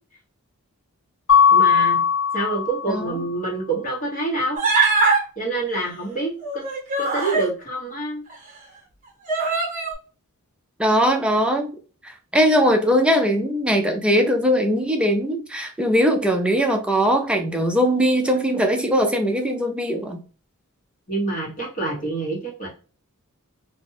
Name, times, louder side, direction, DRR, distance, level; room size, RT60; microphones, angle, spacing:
Mallet percussion, 1.3-3.1, left 7 dB, 60° left, 0.6 m, -18 dB
voice 1, 1.5-2.0 2.3-4.6 5.4-6.6 7.0-8.2 21.1-22.7, right 2 dB, 35° left, 1.1 m, -27 dB
Human voice, 4.6-5.2 6.4-7.5 8.3-8.4 9.3-9.9, right 3 dB, 35° right, 0.9 m, -21 dB
voice 2, 10.8-11.7 12.0-20.2, equal, 5° right, 0.4 m, -20 dB
2.5 x 2.2 x 3.2 m
head